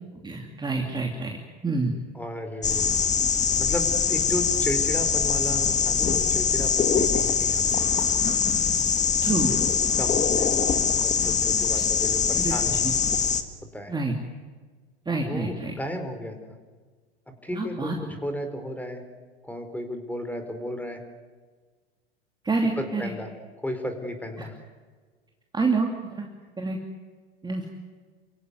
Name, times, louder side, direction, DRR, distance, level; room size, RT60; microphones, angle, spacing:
voice 1, 0.2-1.4 1.6-1.9 9.2-9.5 12.4-12.5 12.8-12.9 13.9-14.1 15.1-15.7 17.6-17.9 22.4-23.1 25.5-26.3 26.6-26.8 27.4-27.6, right 3 dB, 15° right, 1 dB, 3.0 m, -27 dB
voice 2, 2.1-3.0 3.6-8.4 10.0-13.0 13.7-13.9 15.2-16.6 17.3-19.0 19.4-21.0 22.6-23.3 23.6-24.6, equal, 5° left, 7 dB, 4.4 m, -34 dB
sound 1, 2.6-13.4, left 6 dB, 20° left, 1.9 m, -23 dB
29.0 x 16.5 x 9.7 m, 1.4 s
hypercardioid pair, 100°, 33 cm